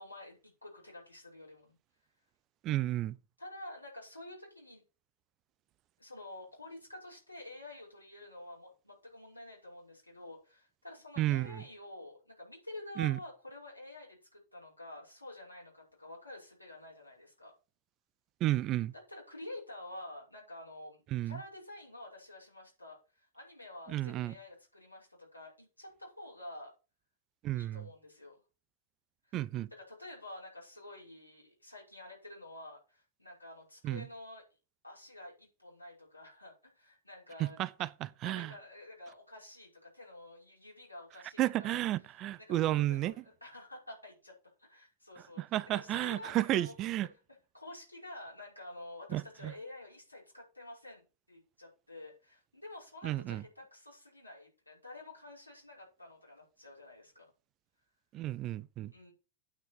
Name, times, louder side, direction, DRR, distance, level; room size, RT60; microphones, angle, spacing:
voice 1, 0.0-1.8 3.4-4.8 6.0-17.5 18.9-26.7 27.5-28.3 29.3-29.4 29.7-34.4 34.8-37.6 38.2-41.8 42.1-44.3 44.6-46.7 47.5-57.3 58.9-59.1, left 1 dB, 85° left, 5.7 m, -49 dB
voice 2, 2.6-3.2 11.2-11.5 13.0-13.2 18.4-18.9 21.1-21.4 23.9-24.3 27.4-27.9 29.3-29.7 33.8-34.1 37.4-38.5 41.4-43.1 45.4-47.1 49.1-49.5 53.0-53.4 58.1-58.9, right 15 dB, 35° right, 0.5 m, -32 dB
9.0 x 5.6 x 6.6 m
figure-of-eight pair, 90°, 0 cm